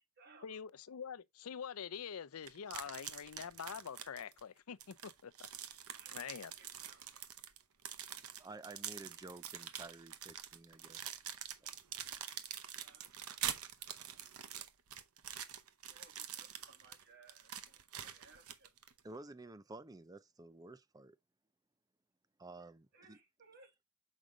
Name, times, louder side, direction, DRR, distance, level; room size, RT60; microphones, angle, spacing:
voice 1, 0.4-5.5 6.1-6.5, left 7 dB, 70° left, 0.5 m, -45 dB
sound 1, 2.5-4.4 4.8-19.0, right 10 dB, 75° right, 0.8 m, -46 dB
voice 2, 5.9-7.2 12.8-13.6 15.9-18.7 22.9-23.7, right 3 dB, 50° right, 1.8 m, -63 dB
voice 3, 8.4-11.2 11.5-11.6 12.6-12.8 19.0-21.2 22.4-23.2, right 2 dB, 15° right, 0.4 m, -52 dB
6.4 x 5.0 x 3.6 m
head